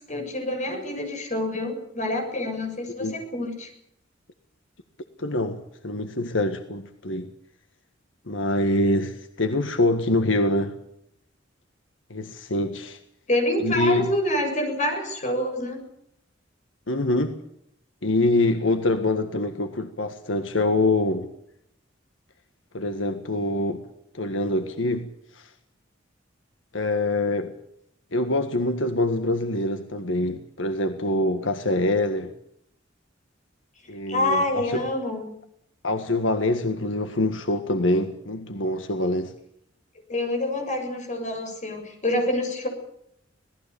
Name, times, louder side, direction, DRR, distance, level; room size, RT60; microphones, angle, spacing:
voice 1, 0.1-3.7 13.3-15.8 34.1-35.3 40.1-42.7, left 1 dB, 40° left, 5 dB, 7.5 m, -27 dB
voice 2, 5.2-7.3 8.3-10.7 12.1-13.0 13.6-14.1 16.9-17.4 18.0-21.3 22.7-23.8 24.1-25.5 26.7-27.5 28.1-32.3 33.9-34.8 35.8-39.3, left 1 dB, 80° left, 8 dB, 1.7 m, -25 dB
26.5 x 18.5 x 7.0 m, 0.75 s
head